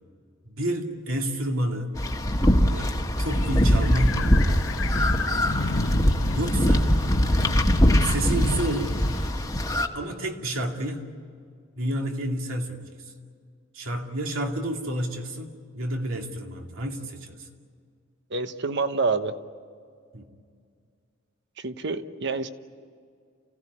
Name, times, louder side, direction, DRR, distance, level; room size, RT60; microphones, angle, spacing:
voice 1, 0.4-2.0 2.6-4.5 5.4-5.7 6.3-6.9 8.0-9.0 9.9-11.0 11.8-13.1 13.7-17.5 20.1-20.3, right 1 dB, 85° right, 2 dB, 2.5 m, -30 dB
sound 1, 1.9-9.9, equal, 15° left, 1.4 m, -22 dB
sound 2, 3.2-9.3, left 3 dB, 70° left, 0.9 m, -32 dB
voice 2, 18.3-19.3 21.6-22.5, right 4 dB, 60° right, 10 dB, 1.0 m, -27 dB
29.0 x 16.0 x 9.8 m, 2.2 s
head